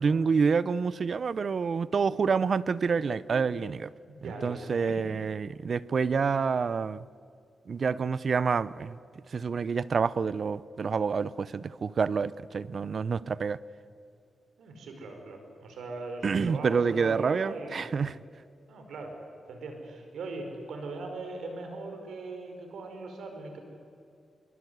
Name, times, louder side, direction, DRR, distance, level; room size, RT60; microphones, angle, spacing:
voice 1, 0.0-3.9 4.2-7.0 7.7-9.0 9.3-13.6 16.2-18.2, right 5 dB, 55° right, 19 dB, 0.6 m, -28 dB
voice 2, 4.1-5.0 14.6-17.9 18.7-19.2 19.5-23.6, right 3 dB, 90° right, 4 dB, 4.8 m, -40 dB
24.0 x 23.5 x 8.1 m, 2.5 s
cardioid pair, 80°, 0 cm